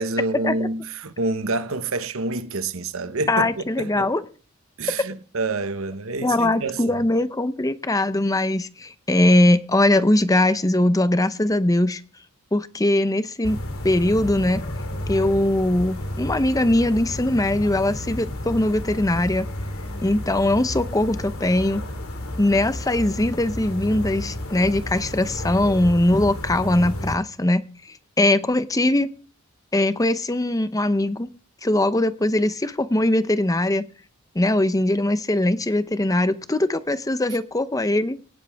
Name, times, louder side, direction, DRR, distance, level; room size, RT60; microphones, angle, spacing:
voice 1, 0.0-4.1 4.8-7.0, right 3 dB, 65° right, 1.0 m, -28 dB
voice 2, 3.3-4.2 5.0-5.1 6.2-12.0 12.5-13.6 13.8-14.6 15.1-19.5 20.0-21.8 22.4-27.6 28.2-29.1 29.7-31.3 31.6-33.8 34.3-38.2, left 1 dB, 15° left, 0.7 m, -21 dB
sound 1, 13.4-27.2, left 1 dB, 75° left, 2.5 m, -32 dB
18.0 x 12.0 x 3.5 m
head